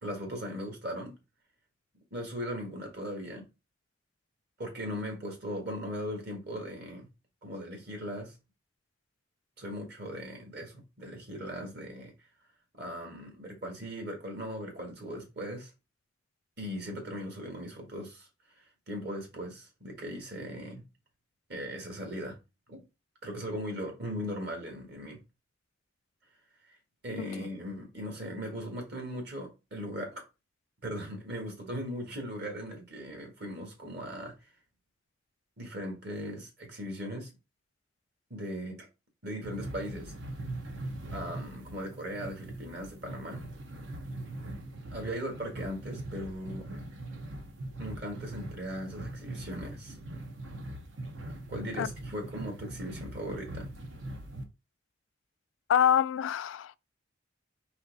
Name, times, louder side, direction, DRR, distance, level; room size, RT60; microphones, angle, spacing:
voice 1, 0.0-1.2 2.1-3.4 4.6-7.1 7.4-8.4 9.6-12.1 12.8-15.7 16.6-18.3 18.6-20.8 21.5-22.4 22.7-22.8 23.2-25.2 27.0-30.2 30.8-34.3 35.6-37.3 38.3-38.9 39.2-40.1 41.1-43.4 44.9-46.7 47.8-50.0 51.5-53.7, equal, 60° right, 1.7 m, -38 dB
voice 2, 27.2-27.5 51.8-51.9 55.7-56.8, left 8 dB, 85° left, 0.3 m, -26 dB
sound 1, 39.4-54.4, right 1 dB, 85° right, 0.9 m, -41 dB
4.3 x 3.0 x 4.0 m
head